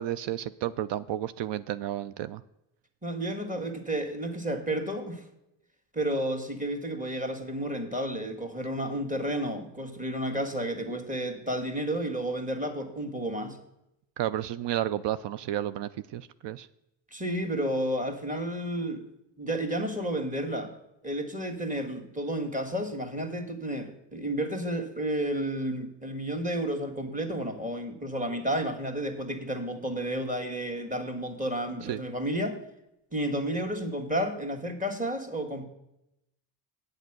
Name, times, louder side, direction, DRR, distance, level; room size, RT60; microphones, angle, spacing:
voice 1, 0.0-2.4 14.2-16.7 31.8-32.0, right 12 dB, 60° right, 16 dB, 0.5 m, -32 dB
voice 2, 3.0-5.2 5.9-13.6 17.1-19.0 19.4-20.7 21.0-32.6 33.1-35.6, right 1 dB, 15° right, 6 dB, 1.9 m, -31 dB
8.1 x 8.0 x 6.0 m, 0.86 s
supercardioid pair, 50°, 49 cm